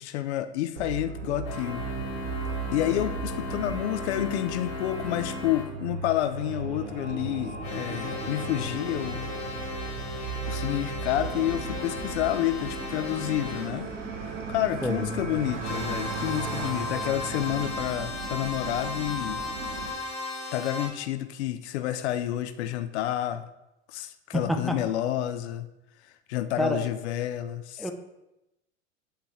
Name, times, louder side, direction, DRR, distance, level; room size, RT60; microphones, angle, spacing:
voice 1, 0.0-1.9 2.7-9.3 10.5-13.9 14.2-19.4 20.5-23.5 23.9-25.7 26.3-27.9, left 13 dB, 70° left, 11 dB, 0.5 m, -29 dB
sound 1, 0.8-17.8, right 5 dB, 90° right, 0.9 m, -37 dB
sound 2, 1.4-5.7 7.6-13.7 15.6-20.9, left 2 dB, 50° left, 1.8 m, -36 dB
sound 3, 11.1-19.9, right 4 dB, 35° right, 1.4 m, -40 dB
voice 2, 14.8-15.2 24.3-24.8 26.6-26.8 27.8-27.9, equal, ahead, 4 dB, 0.6 m, -27 dB
7.5 x 3.4 x 4.3 m, 0.90 s
hypercardioid pair, 85°, 36 cm